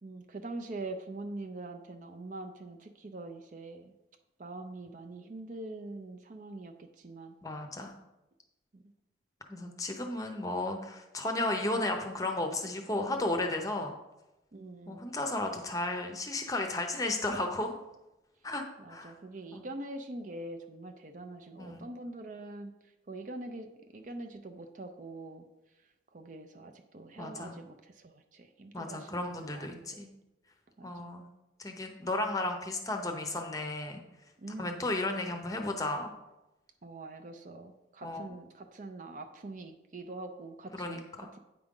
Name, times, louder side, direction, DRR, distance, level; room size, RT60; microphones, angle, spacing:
voice 1, 0.0-3.9 4.4-7.4 8.7-8.8 14.5-15.1 18.8-22.7 23.1-25.4 26.1-30.0 30.8-30.9 34.4-34.9 36.8-41.4, right 2 dB, 45° right, 5 dB, 0.5 m, -44 dB
voice 2, 7.4-7.9 9.5-13.9 14.9-17.7 18.4-18.6 18.9-19.1 19.5-19.6 21.6-21.9 27.2-27.6 28.7-30.1 30.8-31.2 31.6-34.0 34.6-36.1 38.0-38.3 40.7-41.3, left 2 dB, 20° left, 4 dB, 0.7 m, -34 dB
8.8 x 4.9 x 3.7 m, 0.97 s
head